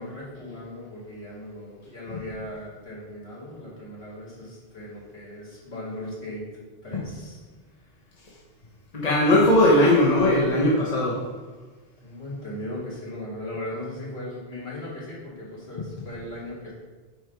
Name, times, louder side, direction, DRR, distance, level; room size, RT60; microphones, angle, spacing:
voice 1, 0.0-6.4 6.8-7.4 12.0-16.7, left 1 dB, 85° left, -7 dB, 2.6 m, -37 dB
voice 2, 8.9-11.2, left 1 dB, 40° left, -5 dB, 1.1 m, -19 dB
5.7 x 5.5 x 4.5 m, 1.3 s
omnidirectional pair, 1.1 m